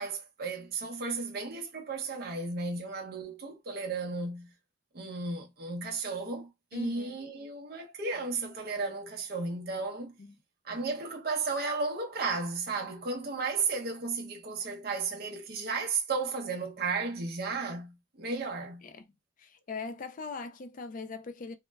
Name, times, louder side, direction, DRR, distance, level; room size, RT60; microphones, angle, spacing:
voice 1, 0.0-4.5 4.9-10.1 10.6-18.8, right 4 dB, 50° right, 0.6 m, -34 dB
voice 2, 6.7-7.1 10.2-10.4 18.8-19.0 19.4-21.5, left 4 dB, 40° left, 0.4 m, -40 dB
2.1 x 2.0 x 3.3 m
head